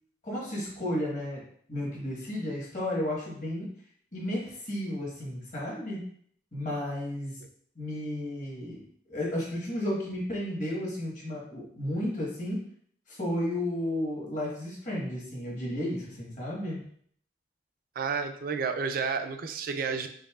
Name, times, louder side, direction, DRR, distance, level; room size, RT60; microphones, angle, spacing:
voice 1, 0.2-1.4 1.7-3.7 4.1-6.0 6.5-7.4 7.7-8.8 9.1-12.6 13.1-16.8, left 1 dB, 45° left, -5 dB, 1.4 m, -33 dB
voice 2, 18.0-20.1, right 5 dB, 50° right, 7 dB, 0.4 m, -31 dB
5.3 x 2.7 x 2.3 m, 0.63 s
head